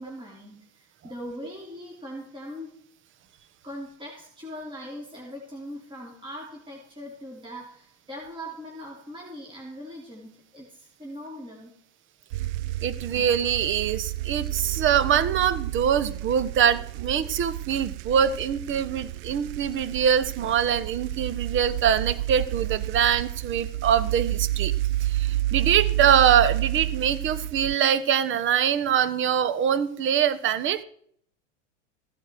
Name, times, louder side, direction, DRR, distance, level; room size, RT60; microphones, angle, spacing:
voice 1, 0.0-2.8 3.6-11.7, equal, 15° right, -2 dB, 3.5 m, -40 dB
sound 1, 12.3-27.8, right 15 dB, 50° right, 0.5 m, -30 dB
voice 2, 12.8-24.7 25.0-30.8, right 8 dB, 35° right, 16 dB, 1.1 m, -23 dB
16.0 x 9.8 x 4.6 m, 0.63 s
hypercardioid pair, 110°, 36 cm